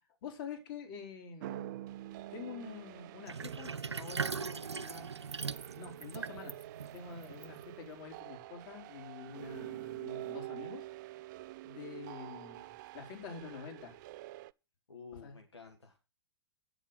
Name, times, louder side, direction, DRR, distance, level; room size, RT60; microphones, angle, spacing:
voice 1, 0.2-1.8 2.3-5.1 5.4-5.5 5.8-6.6 6.9-10.9 11.6-14.0 15.2-15.4, left 6 dB, 50° left, 4.3 m, -47 dB
sound 1, 1.4-14.5, right 16 dB, 45° right, 0.4 m, -47 dB
Sink (filling or washing), 3.3-8.0, right 5 dB, 90° right, 0.6 m, -40 dB
voice 2, 14.9-16.0, left 5 dB, 85° left, 1.5 m, -51 dB
9.1 x 7.2 x 5.9 m
figure-of-eight pair, 105°, 14 cm